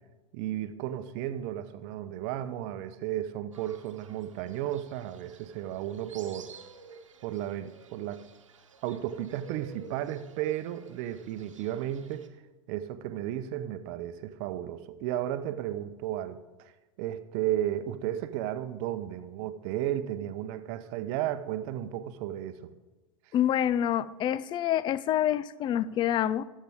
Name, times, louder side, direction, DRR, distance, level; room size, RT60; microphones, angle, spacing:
voice 1, 0.3-6.5 7.2-8.2 8.8-12.3 12.7-16.7 17.0-22.7, right 12 dB, 55° right, 11 dB, 0.8 m, -34 dB
Fowl, 3.5-12.3, right 5 dB, 90° right, 1.1 m, -52 dB
voice 2, 23.3-26.4, left 11 dB, 30° left, 18 dB, 0.4 m, -27 dB
17.0 x 7.5 x 3.6 m, 1.2 s
hypercardioid pair, 100°, 16 cm